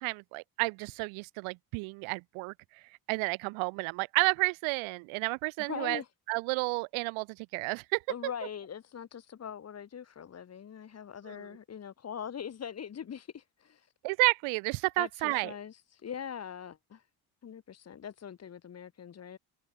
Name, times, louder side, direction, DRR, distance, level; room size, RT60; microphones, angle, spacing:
voice 1, 0.0-2.5 3.1-6.0 6.3-8.0 11.3-11.4 14.0-15.5, right 29 dB, 85° right, 1.2 m, -31 dB
voice 2, 5.7-6.1 8.1-13.9 15.0-17.0 17.4-19.4, left 8 dB, 35° left, 0.9 m, -42 dB
supercardioid pair, 60°, 47 cm